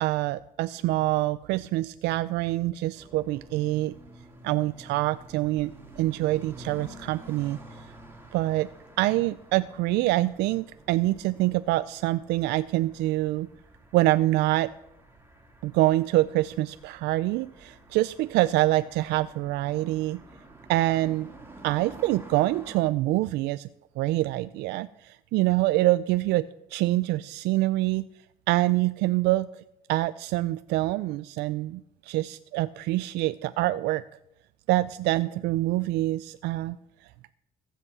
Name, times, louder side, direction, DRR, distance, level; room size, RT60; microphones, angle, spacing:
voice 1, 0.0-3.9 4.4-5.7 6.0-7.6 8.3-8.7 9.0-13.5 13.9-14.7 15.6-20.2 20.7-21.3 21.6-23.7 24.0-26.5 26.7-28.0 28.5-29.5 29.9-34.0 34.7-36.8, right 17 dB, 85° right, 15 dB, 0.4 m, -25 dB
sound 1, 2.9-22.8, right 1 dB, 15° right, 2.6 m, -50 dB
15.0 x 8.0 x 7.3 m, 0.85 s
cardioid pair, 110°, 17 cm